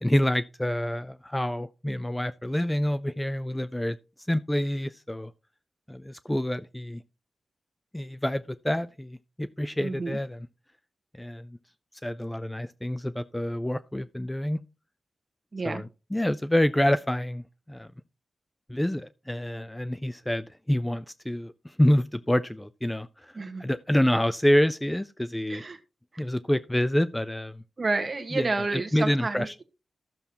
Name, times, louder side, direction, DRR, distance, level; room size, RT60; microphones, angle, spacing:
voice 1, 0.0-4.0 4.3-5.3 5.9-7.0 7.9-10.5 11.2-11.6 12.0-14.6 15.6-17.9 18.7-25.6 26.2-27.6 28.3-29.5, left 1 dB, 10° left, 0.3 m, -27 dB
voice 2, 9.8-10.2 15.5-15.8 23.3-23.7 25.5-25.8 26.1-26.2 27.8-29.6, right 3 dB, 35° right, 1.3 m, -30 dB
13.0 x 6.8 x 2.8 m
wide cardioid pair, 105°, 0 cm